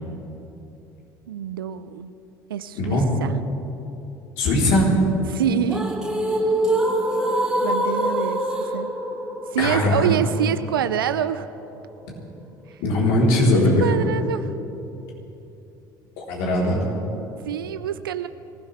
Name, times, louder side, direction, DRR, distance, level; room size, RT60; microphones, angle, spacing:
voice 1, 1.3-2.1 2.5-3.4 5.3-6.0 7.6-8.4 8.7-8.9 9.5-11.5 13.8-14.5 17.4-18.3, right 10 dB, 85° right, 12 dB, 0.5 m, -26 dB
voice 2, 2.8-3.1 4.4-4.9 9.6-10.1 12.8-13.9 16.2-16.8, left 1 dB, 65° left, -3 dB, 3.9 m, -20 dB
sound 1, 5.5-11.5, right 1 dB, 5° right, 3.1 m, -25 dB
24.0 x 15.5 x 3.5 m, 3.0 s
hypercardioid pair, 65°, 11 cm